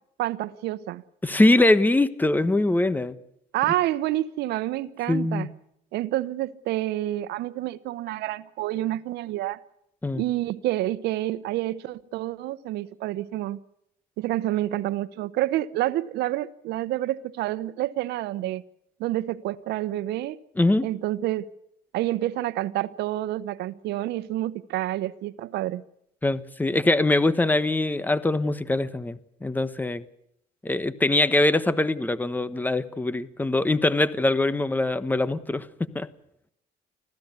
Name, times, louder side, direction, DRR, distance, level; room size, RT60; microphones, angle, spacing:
voice 1, 0.2-1.0 3.5-5.5 5.9-9.6 10.1-13.6 14.2-18.6 19.0-20.4 20.8-21.5 21.9-25.8, right 15 dB, 80° right, 1.0 m, -28 dB
voice 2, 1.2-3.2 5.1-5.5 10.0-10.2 20.5-20.9 26.2-30.0 30.6-35.7 35.9-36.1, left 2 dB, 10° left, 1.2 m, -23 dB
25.5 x 15.5 x 8.3 m
cardioid pair, 110°, 17 cm